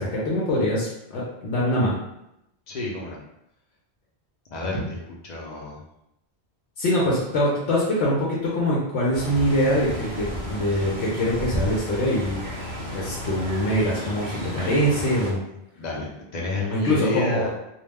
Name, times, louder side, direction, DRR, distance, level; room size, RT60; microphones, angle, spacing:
voice 1, 0.0-2.0 6.8-12.4 12.9-15.4 16.7-17.5, equal, 85° left, -5 dB, 0.9 m, -23 dB
voice 2, 2.7-3.2 4.5-5.8 15.8-17.5, left 2 dB, 50° left, -2 dB, 0.6 m, -30 dB
sound 1, 9.1-15.3, equal, 30° right, 0.7 m, -32 dB
2.4 x 2.0 x 3.3 m, 0.83 s
omnidirectional pair, 1.1 m